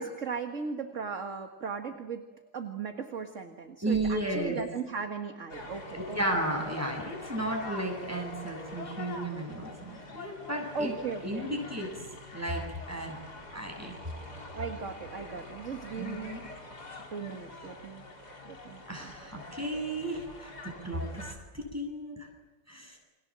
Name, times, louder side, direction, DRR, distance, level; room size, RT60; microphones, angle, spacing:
voice 1, 0.0-2.2 2.5-6.2 6.7-6.8 10.7-11.5 14.5-16.4 17.1-18.1 18.5-19.1, right 5 dB, 45° right, 5 dB, 2.0 m, -37 dB
voice 2, 3.8-4.6 5.9-10.9 11.2-11.9 12.3-13.2 13.5-14.0 16.0-16.4 18.9-22.3 22.7-23.0, right 1 dB, 10° right, 2 dB, 7.4 m, -34 dB
sound 1, 5.5-21.4, left 2 dB, 60° left, 4.4 m, -45 dB
29.5 x 24.5 x 7.6 m, 1.2 s
omnidirectional pair, 1.9 m